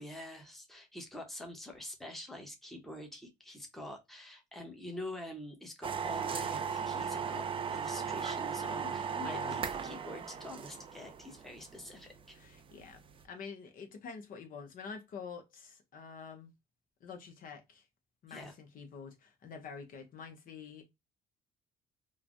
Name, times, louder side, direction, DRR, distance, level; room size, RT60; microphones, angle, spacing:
voice 1, 0.0-12.4 18.3-18.5, left 1 dB, ahead, 0.8 m, -46 dB
sound 1, 5.8-13.2, right 6 dB, 30° right, 0.4 m, -37 dB
voice 2, 9.2-9.5 12.3-16.5 17.0-17.9 18.2-20.8, left 6 dB, 55° left, 0.8 m, -47 dB
3.1 x 2.1 x 2.5 m
cardioid pair, 110°, 17 cm